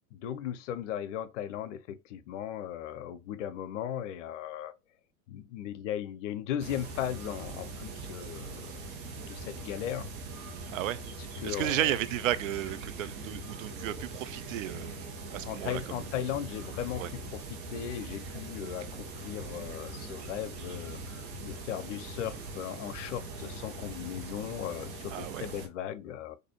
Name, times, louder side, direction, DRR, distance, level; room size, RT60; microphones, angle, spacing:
voice 1, 0.1-4.7 5.3-8.8 9.3-10.1 11.4-12.0 15.4-26.4, left 10 dB, 55° left, 0.6 m, -37 dB
sound 1, 6.6-25.7, right 2 dB, 45° right, 1.1 m, -42 dB
voice 2, 11.4-15.8 17.0-17.1 25.1-25.5, right 13 dB, 65° right, 0.5 m, -33 dB
4.0 x 2.7 x 2.9 m
figure-of-eight pair, 85°, 43 cm